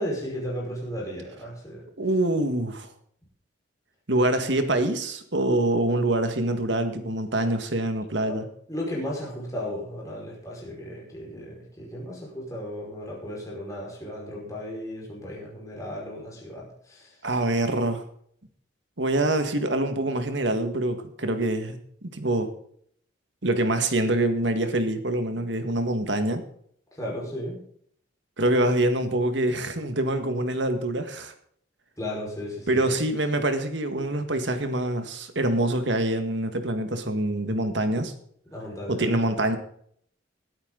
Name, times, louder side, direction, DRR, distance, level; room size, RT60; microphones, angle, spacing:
voice 1, 0.0-1.8 8.2-8.4 8.7-17.1 25.4-25.7 26.9-27.6 32.0-32.9 38.5-39.4, equal, 15° left, -3 dB, 5.1 m, -35 dB
voice 2, 2.0-2.9 4.1-8.5 17.2-18.0 19.0-22.5 23.4-26.4 28.4-31.3 32.7-38.1 38.9-39.6, right 1 dB, 65° right, 7 dB, 1.9 m, -25 dB
20.5 x 8.8 x 4.0 m, 0.63 s
head